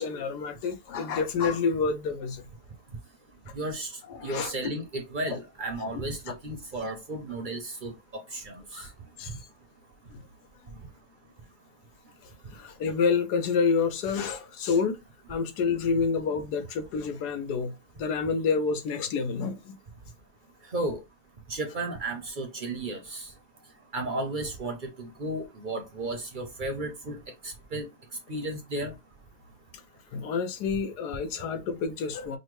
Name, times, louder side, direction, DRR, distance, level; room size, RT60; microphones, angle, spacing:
voice 1, 0.0-2.5 4.1-4.5 6.3-6.4 8.7-8.9 9.2-9.4 10.1-10.2 12.5-15.0 15.3-17.7 18.0-19.8 30.1-32.4, left 5 dB, 90° left, 1.3 m, -28 dB
voice 2, 3.5-3.9 4.2-8.9 20.7-21.0 21.5-23.3 23.9-27.2 27.4-27.8 28.3-28.9, right 2 dB, 45° right, 0.6 m, -34 dB
5.4 x 2.2 x 3.1 m
omnidirectional pair, 1.7 m